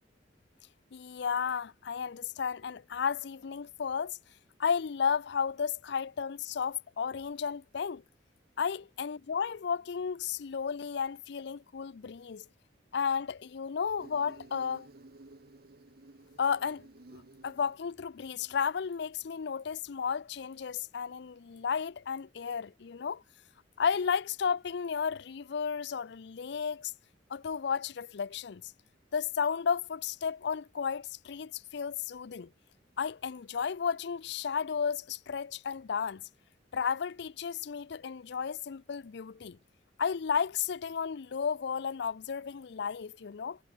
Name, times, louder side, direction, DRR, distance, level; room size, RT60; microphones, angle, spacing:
voice 1, 0.9-4.2 4.6-8.0 8.6-12.4 12.9-14.9 16.4-16.9 17.1-23.2 23.8-26.9 27.3-28.6 29.1-32.5 33.0-36.2 36.7-39.6 40.0-43.6, left 6 dB, 70° left, 0.5 m, -33 dB
Insect, 14.0-19.0, right 2 dB, 60° right, 1.1 m, -55 dB
head